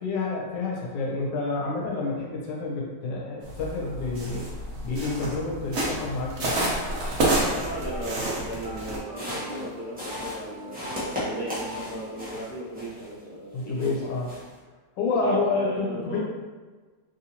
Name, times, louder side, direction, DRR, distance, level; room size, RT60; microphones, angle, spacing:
voice 1, 0.0-4.4 4.8-6.6 13.5-14.3 15.0-16.2, left 3 dB, 80° left, -2 dB, 1.4 m, -29 dB
sound 1, 3.4-9.0, right 1 dB, 55° right, 0.8 m, -29 dB
sound 2, 7.3-12.3, equal, 75° right, 1.2 m, -41 dB
voice 2, 7.5-10.9 11.2-14.1 15.2-16.2, right 1 dB, 60° left, -6 dB, 1.2 m, -36 dB
sound 3, 9.1-13.2 13.6-14.6, left 1 dB, 10° right, 0.6 m, -36 dB
3.4 x 2.7 x 2.8 m, 1.4 s
omnidirectional pair, 1.9 m